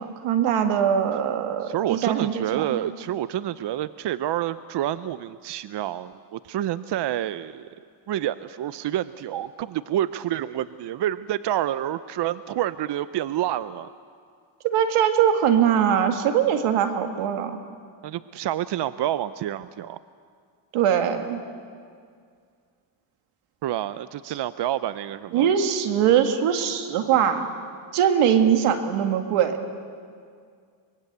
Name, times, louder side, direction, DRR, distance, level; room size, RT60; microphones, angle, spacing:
voice 1, 0.0-2.8 14.6-17.6 20.7-21.4 25.3-27.5 27.9-29.6, right 9 dB, 90° right, 7 dB, 2.0 m, -22 dB
voice 2, 1.6-7.7 8.1-13.9 18.0-20.0 23.6-25.5, right 12 dB, 55° right, 15 dB, 0.7 m, -28 dB
24.0 x 22.0 x 8.1 m, 2.2 s
cardioid pair, 85°, 49 cm